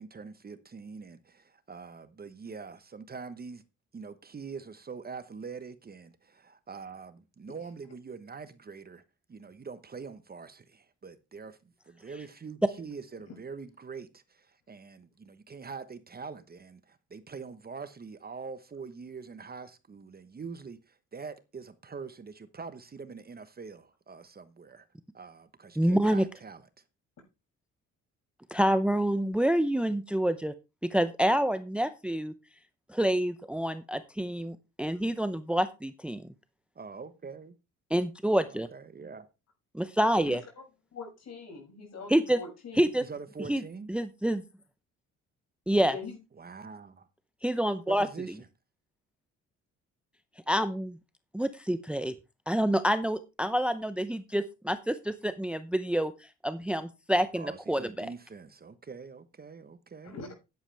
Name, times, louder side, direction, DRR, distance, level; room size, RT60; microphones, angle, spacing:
voice 1, 0.0-3.6 3.9-9.0 9.3-11.6 11.9-24.9 25.1-26.7 36.7-37.5 38.5-39.3 43.0-43.9 46.4-47.1 47.9-48.5 57.3-60.2, right 5 dB, 30° right, 1.1 m, -44 dB
voice 2, 25.8-26.2 28.5-30.5 30.9-32.3 32.9-36.2 37.9-38.7 39.7-40.4 42.1-42.4 42.7-43.0 43.5-43.6 43.9-44.4 45.7-45.9 47.4-48.1 50.5-51.0 51.3-52.1 52.5-56.1 56.4-58.1, right 1 dB, 5° right, 0.7 m, -27 dB
voice 3, 40.9-42.9 45.8-46.2 60.0-60.3, left 4 dB, 60° left, 6.8 m, -42 dB
11.0 x 10.5 x 3.4 m
cardioid pair, 90°, 30 cm